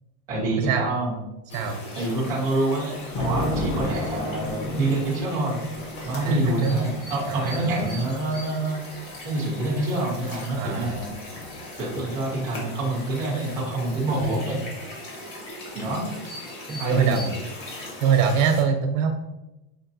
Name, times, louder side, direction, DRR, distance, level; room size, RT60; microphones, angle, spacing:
voice 1, 0.3-1.2 2.0-5.6 6.0-8.8 9.2-11.2 11.8-14.6 15.7-16.1 16.7-17.3, right 2 dB, 10° right, -5 dB, 0.3 m, -26 dB
sound 1, 1.5-18.6, left 1 dB, 60° left, 1.4 m, -39 dB
Thunder, 1.9-9.1 10.2-11.9, left 1 dB, 90° left, 0.8 m, -35 dB
sound 2, 3.2-7.6, left 2 dB, 40° left, 0.7 m, -38 dB
voice 2, 6.2-6.7 7.2-7.7 10.5-10.9 14.2-14.4 16.8-17.2 18.0-19.2, right 6 dB, 70° right, 5 dB, 0.7 m, -23 dB
5.2 x 2.6 x 2.6 m, 0.93 s
supercardioid pair, 165°, 41 cm